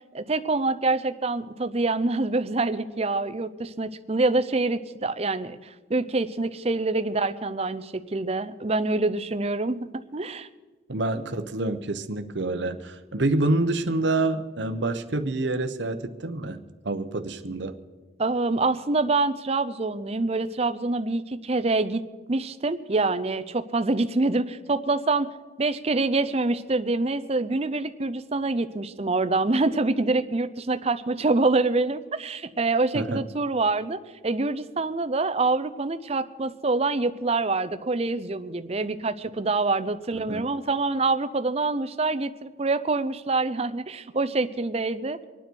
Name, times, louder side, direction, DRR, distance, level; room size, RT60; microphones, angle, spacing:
voice 1, 0.1-10.5 18.2-22.0 22.3-25.3 25.6-45.2, right 3 dB, 30° right, 11 dB, 0.6 m, -26 dB
voice 2, 10.9-17.7 32.9-33.2 40.1-40.5, right 2 dB, 60° right, 8 dB, 0.9 m, -27 dB
25.5 x 9.5 x 4.6 m, 1.3 s
head